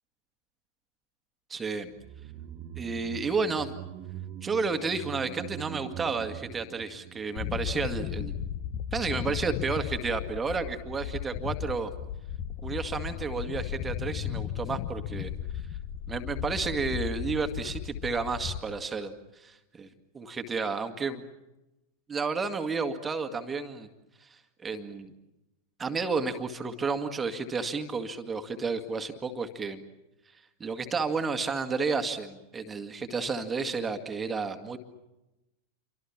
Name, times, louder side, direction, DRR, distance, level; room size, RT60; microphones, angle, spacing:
voice 1, 1.5-1.9 2.8-3.7 4.4-8.3 8.9-11.9 12.6-15.3 16.1-19.9 20.1-21.2 22.1-23.9 24.2-25.1 25.8-29.8 30.6-34.8, right 4 dB, 15° right, 7 dB, 2.0 m, -31 dB
sound 1, 1.9-8.3 8.5-8.6, right 11 dB, 40° right, 1.2 m, -43 dB
sound 2, 7.4-18.6, left 9 dB, 40° left, 1.3 m, -35 dB
28.5 x 25.0 x 7.3 m, 0.98 s
figure-of-eight pair, 90°, 0 cm